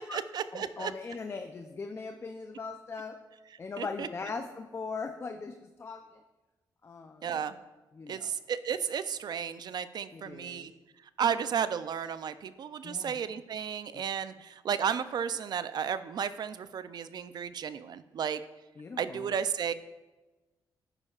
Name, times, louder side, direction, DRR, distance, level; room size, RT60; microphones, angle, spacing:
voice 1, 0.0-0.9 3.8-4.1 7.2-7.6 8.1-10.7 11.2-18.4 19.0-19.7, right 7 dB, 60° right, 13 dB, 0.4 m, -33 dB
voice 2, 0.5-3.2 3.6-6.2 6.8-7.4 7.9-8.4 10.1-10.7 12.8-13.2 13.9-14.0 18.8-19.3, left 4 dB, 30° left, 6 dB, 0.5 m, -40 dB
9.8 x 9.7 x 2.4 m, 1.1 s
cardioid pair, 105°, 8 cm